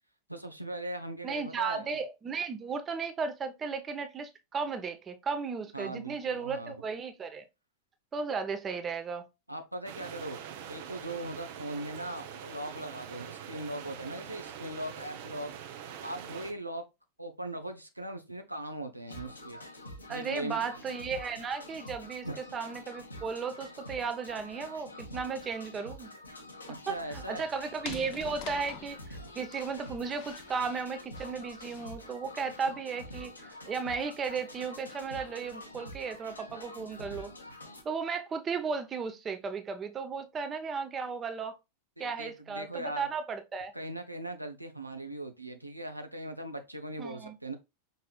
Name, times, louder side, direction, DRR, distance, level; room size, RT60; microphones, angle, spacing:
voice 1, 0.3-1.9 5.7-6.8 9.5-10.4 10.7-15.5 15.9-16.8 17.2-19.6 20.1-21.0 22.2-22.4 26.7-27.4 42.0-43.1 43.7-47.5, right 1 dB, 85° right, 0.7 m, -39 dB
voice 2, 1.2-7.5 8.1-9.2 20.1-22.3 22.5-26.1 26.9-37.3 37.8-41.6 42.0-43.7 47.0-47.3, right 5 dB, 20° right, 0.8 m, -35 dB
sound 1, 9.9-16.5, right 9 dB, 50° right, 0.8 m, -44 dB
sound 2, 19.1-37.8, left 1 dB, 80° left, 1.3 m, -47 dB
sound 3, 26.9-32.0, left 10 dB, 45° left, 0.7 m, -47 dB
5.5 x 4.1 x 2.3 m
figure-of-eight pair, 90°, 0 cm